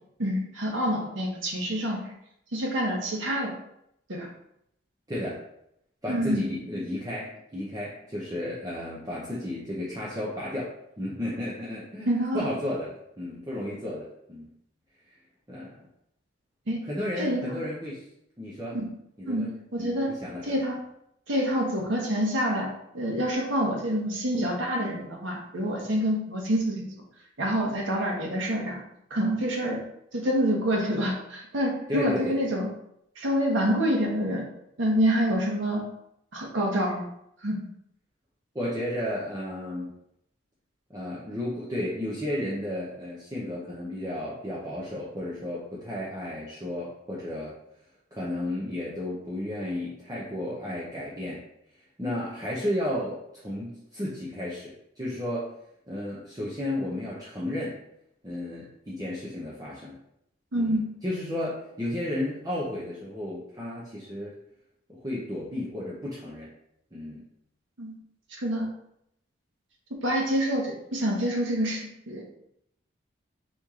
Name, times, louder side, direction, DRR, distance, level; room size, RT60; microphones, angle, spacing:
voice 1, 0.2-2.0 2.5-3.5 4.1-4.3 6.1-6.5 12.1-12.5 16.7-16.8 17.2-17.6 18.7-18.9 19.3-20.1 20.4-20.8 21.3-22.7 22.9-26.8 27.4-28.8 29.1-29.8 30.1-32.7 33.2-34.5 34.8-35.8 36.3-37.1 37.4-37.6 60.5-60.8 67.8-67.9 68.4-68.7 70.0-72.2, equal, 75° right, -1 dB, 1.1 m, -27 dB
voice 2, 5.1-5.4 6.0-10.7 11.0-12.1 12.3-14.5 15.5-15.8 16.8-18.0 18.4-18.8 19.2-19.5 19.8-20.7 29.7-29.8 31.9-32.4 38.5-39.9 40.9-47.5 48.1-51.4 52.0-55.5 55.9-57.8 58.2-59.9 60.6-64.3 64.9-66.5 66.9-67.3, left 1 dB, 20° right, -6 dB, 0.7 m, -33 dB
4.1 x 3.2 x 3.7 m, 0.76 s
head